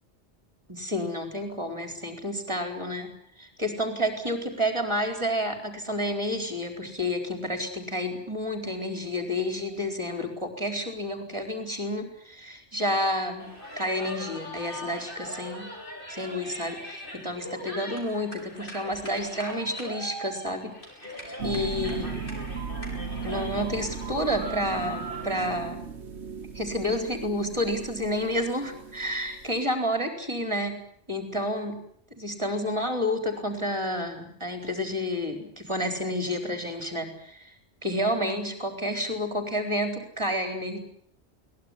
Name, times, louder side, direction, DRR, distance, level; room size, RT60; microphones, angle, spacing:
voice 1, 0.7-13.5 13.8-15.7 16.1-20.7 21.4-22.2 23.2-25.9 26.5-30.8 31.1-31.8 32.1-37.5 37.8-40.8, equal, 25° right, 5 dB, 4.4 m, -30 dB
sound 1, 13.4-25.4, equal, 50° left, 6.9 m, -40 dB
sound 2, 21.4-29.6, right 5 dB, 70° right, 1.5 m, -37 dB
22.5 x 19.0 x 9.8 m, 0.65 s
omnidirectional pair, 1.2 m